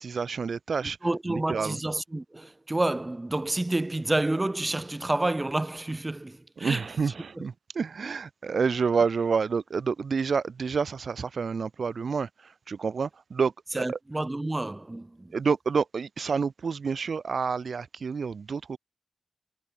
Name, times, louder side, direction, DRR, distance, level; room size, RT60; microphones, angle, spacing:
voice 1, 0.0-1.0 1.3-1.8 6.6-14.0 15.3-18.8, right 5 dB, 85° right, 4.4 m, -29 dB
voice 2, 0.8-6.9 7.4-7.5 13.7-15.4, right 2 dB, 20° right, 3.6 m, -29 dB
wide cardioid pair, 120°, 0 cm